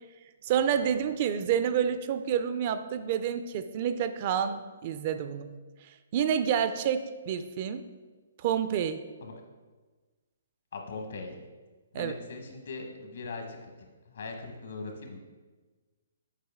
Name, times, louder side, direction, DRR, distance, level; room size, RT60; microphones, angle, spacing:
voice 1, 0.4-5.5 6.1-7.8 8.4-9.0 11.9-12.1, right 8 dB, 40° right, 11 dB, 0.4 m, -28 dB
voice 2, 10.7-11.4 11.9-15.2, left 3 dB, 70° left, 2 dB, 1.4 m, -40 dB
7.3 x 4.9 x 3.6 m, 1.3 s
hypercardioid pair, 145°, 0 cm